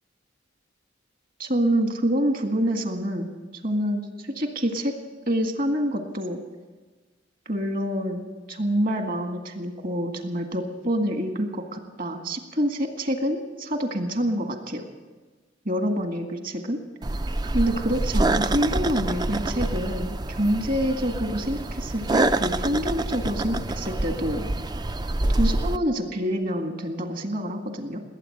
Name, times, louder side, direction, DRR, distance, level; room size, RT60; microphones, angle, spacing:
voice 1, 1.4-3.3 3.6-4.9 5.3-6.4 7.5-14.8 15.7-16.8 17.5-24.4 25.4-28.0, equal, 45° right, 5 dB, 1.9 m, -27 dB
sound 1, 17.0-25.8, right 2 dB, 20° right, 0.4 m, -26 dB
20.0 x 9.1 x 7.9 m, 1.3 s
head